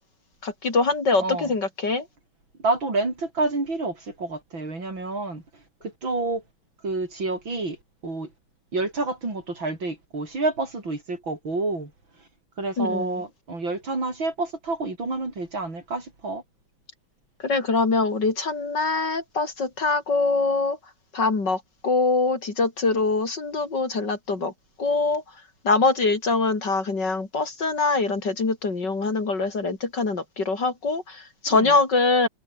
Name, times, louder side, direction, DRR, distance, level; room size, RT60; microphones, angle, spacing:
voice 1, 0.4-2.0 12.8-13.2 17.4-20.8 21.1-24.5 24.8-25.2 25.6-32.3, left 3 dB, 50° left, 4.2 m, -23 dB
voice 2, 1.2-1.5 2.6-5.4 5.8-6.4 6.8-7.8 8.0-8.3 8.7-11.9 12.6-16.4 31.5-31.8, right 3 dB, 60° right, 6.7 m, -28 dB
omnidirectional pair, 2.4 m